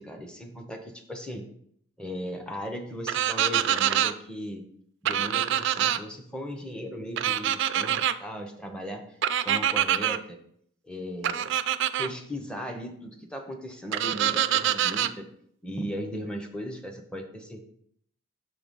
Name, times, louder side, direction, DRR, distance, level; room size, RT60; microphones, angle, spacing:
voice 1, 0.0-1.5 2.0-4.6 5.0-9.2 9.4-10.4 10.8-11.5 12.0-15.3 15.6-17.6, equal, 5° left, 4 dB, 0.7 m, -37 dB
sound 1, 3.1-4.1 5.1-6.0 7.2-8.1 9.2-10.2 11.2-12.1 13.9-15.1, right 10 dB, 55° right, 0.3 m, -25 dB
6.4 x 3.8 x 5.3 m, 0.68 s
head